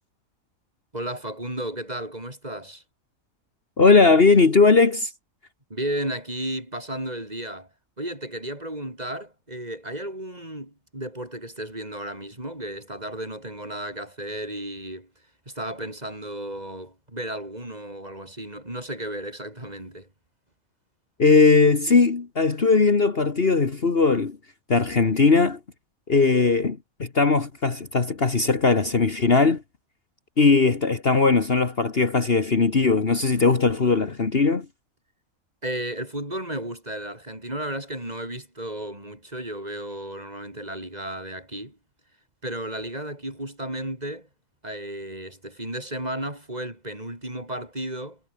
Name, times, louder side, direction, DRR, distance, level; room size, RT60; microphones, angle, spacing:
voice 1, 0.9-2.8 5.7-7.7 8.0-15.1 15.5-20.1 26.1-26.4 35.6-41.8 42.4-44.3 44.6-48.2, right 1 dB, 30° right, 5.9 m, -34 dB
voice 2, 3.8-5.1 21.2-24.4 24.7-25.6 26.1-29.6 30.4-34.7, left 4 dB, 45° left, 1.9 m, -19 dB
omnidirectional pair, 1.5 m